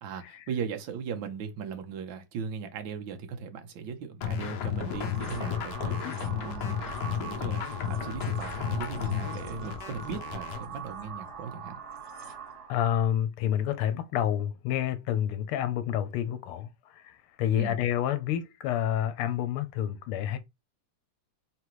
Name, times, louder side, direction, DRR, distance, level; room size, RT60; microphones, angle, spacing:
voice 1, 0.0-6.0 6.3-11.8 17.6-17.7, right 6 dB, 70° right, 1.5 m, -38 dB
sound 1, 4.2-10.6, left 8 dB, 65° left, 1.1 m, -33 dB
sound 2, 4.8-12.8, right 6 dB, 50° right, 1.8 m, -42 dB
voice 2, 12.7-20.4, left 10 dB, 85° left, 1.5 m, -29 dB
3.8 x 3.4 x 3.0 m
omnidirectional pair, 2.3 m